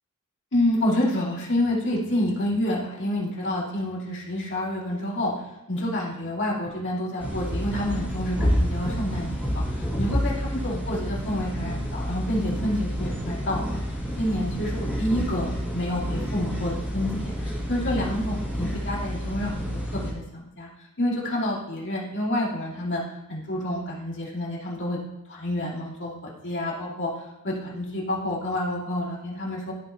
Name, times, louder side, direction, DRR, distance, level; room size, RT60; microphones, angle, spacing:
voice 1, 0.5-5.3 5.7-13.8 14.2-20.7 21.0-23.0 23.3-25.0 25.3-27.1 27.4-29.7, left 1 dB, 55° left, -6 dB, 2.6 m, -28 dB
sound 1, 7.2-20.1, equal, 5° right, 2.3 m, -29 dB
14.0 x 5.1 x 2.9 m, 0.90 s
head